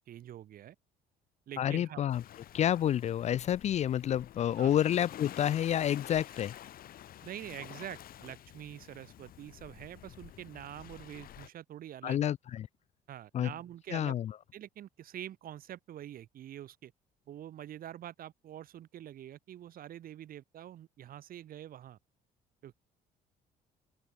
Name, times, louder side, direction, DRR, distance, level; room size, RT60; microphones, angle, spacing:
voice 1, 0.1-0.8 1.5-2.0 4.6-4.7 7.2-12.2 13.1-14.1 14.5-16.9 17.3-22.0 22.6-22.8, right 11 dB, 60° right, 2.1 m, -46 dB
voice 2, 1.6-2.2 2.5-6.5 12.0-12.7 13.3-13.5 13.9-14.3, left 10 dB, 40° left, 0.4 m, -29 dB
Waves surf, 2.1-11.5, left 12 dB, 60° left, 2.2 m, -50 dB
open air
cardioid pair, 110°, 17 cm